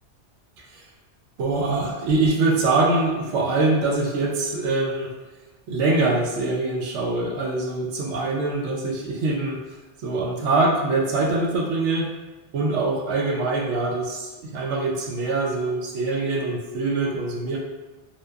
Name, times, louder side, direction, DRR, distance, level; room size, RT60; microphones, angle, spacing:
voice 1, 1.4-5.1 5.7-9.6 10.0-12.1 12.5-17.6, right 3 dB, 85° right, -1 dB, 0.9 m, -23 dB
2.7 x 2.1 x 2.2 m, 1.2 s
omnidirectional pair, 1.2 m